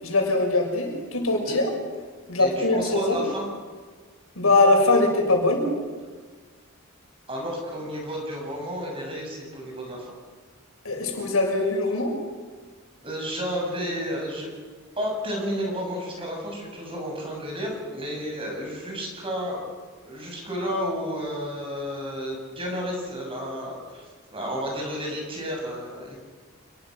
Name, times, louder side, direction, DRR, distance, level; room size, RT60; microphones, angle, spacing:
voice 1, 0.0-1.7 2.3-3.2 4.4-5.7 10.8-12.1, left 2 dB, 80° left, 2 dB, 6.3 m, -22 dB
voice 2, 2.4-3.4 7.3-10.1 13.0-14.5 15.0-19.6 20.0-26.2, equal, 25° right, 0 dB, 7.4 m, -31 dB
28.5 x 21.0 x 6.5 m, 1.5 s
head